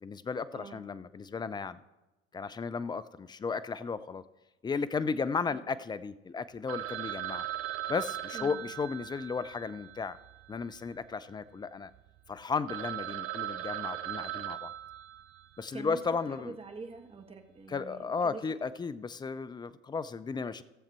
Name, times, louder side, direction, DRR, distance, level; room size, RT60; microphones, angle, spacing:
voice 1, 0.0-1.8 2.3-4.2 4.6-7.5 7.9-10.2 10.5-11.9 12.3-14.7 15.6-16.5 17.7-20.6, left 5 dB, 15° left, 15 dB, 0.4 m, -34 dB
Telephone, 6.7-11.0 11.3-11.4 11.9-12.0 12.4-12.5 12.7-15.6, right 13 dB, 50° right, 0.7 m, -39 dB
voice 2, 16.3-18.4, right 4 dB, 20° right, 5 dB, 1.5 m, -45 dB
16.5 x 7.2 x 4.4 m, 1.0 s
hypercardioid pair, 80°, 32 cm